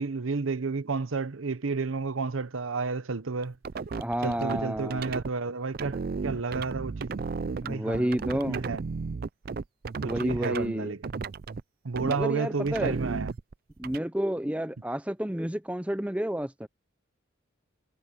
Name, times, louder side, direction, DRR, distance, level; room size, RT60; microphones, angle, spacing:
voice 1, 0.0-3.6 4.2-7.1 7.5-8.2 8.5-8.8 10.0-11.1 11.8-13.4, right 4 dB, 85° right, 0.8 m, -31 dB
sound 1, 3.4-5.3 5.7-10.7 11.0-11.6 11.9-12.2 12.7-14.0, right 4 dB, 45° right, 0.4 m, -34 dB
voice 2, 3.9-5.0 7.6-8.6 10.0-10.9 12.0-13.0 13.8-16.7, equal, 5° right, 0.7 m, -30 dB
head